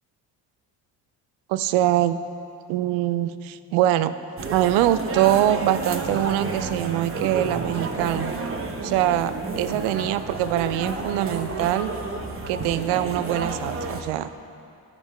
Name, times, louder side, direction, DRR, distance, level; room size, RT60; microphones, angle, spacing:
voice 1, 1.5-2.2 2.7-4.1 4.5-8.3 8.8-11.9 12.5-14.3, right 13 dB, 80° right, 13 dB, 0.5 m, -23 dB
sound 1, 4.4-14.0, right 3 dB, 30° right, 0.9 m, -31 dB
10.5 x 5.4 x 4.9 m, 2.5 s
supercardioid pair, 80°, 47 cm